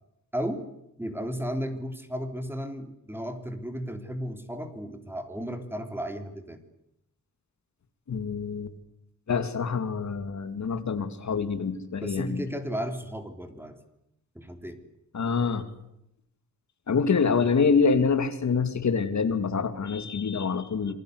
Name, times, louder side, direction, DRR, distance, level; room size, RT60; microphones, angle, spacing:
voice 1, 0.3-0.7 1.0-6.6 12.0-13.8 14.4-14.8 20.9-21.0, equal, 5° right, 7 dB, 3.6 m, -34 dB
voice 2, 8.1-8.8 9.3-12.4 15.1-15.7 16.9-20.9, left 5 dB, 60° left, 9 dB, 2.7 m, -26 dB
27.5 x 22.0 x 8.2 m, 0.82 s
wide cardioid pair, 135°, 32 cm